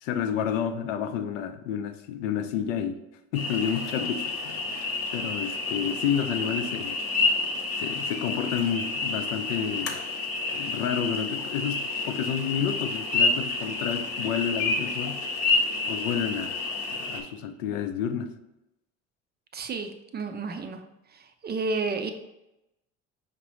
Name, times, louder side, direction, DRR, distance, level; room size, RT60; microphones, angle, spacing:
voice 1, 0.0-3.0 3.3-4.7 5.1-7.0 7.8-10.0 10.5-15.2 15.9-16.6 16.9-18.3, left 8 dB, 80° left, 8 dB, 0.5 m, -30 dB
sound 1, 3.3-17.2, left 3 dB, 40° left, 0.9 m, -29 dB
voice 2, 19.5-20.8 21.1-22.1, right 3 dB, 25° right, 7 dB, 0.4 m, -31 dB
5.0 x 2.9 x 3.0 m, 0.93 s
hypercardioid pair, 70°, 37 cm